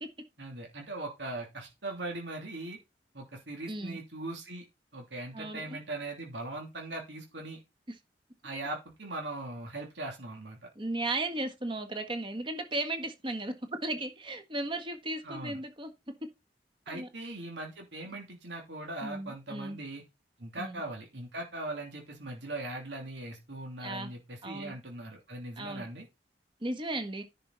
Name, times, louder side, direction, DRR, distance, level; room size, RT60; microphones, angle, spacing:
voice 1, 0.4-2.8 3.1-4.6 4.9-7.6 8.4-10.7 15.2-15.6 16.9-20.0 20.4-26.1, right 2 dB, 85° right, 3.0 m, -40 dB
voice 2, 3.7-4.0 5.3-5.8 10.7-15.9 16.9-17.1 18.1-18.2 19.0-19.8 20.6-20.8 23.8-24.1 24.4-24.8 25.6-25.9 26.6-27.2, right 2 dB, 30° right, 1.6 m, -35 dB
10.5 x 5.7 x 4.1 m
head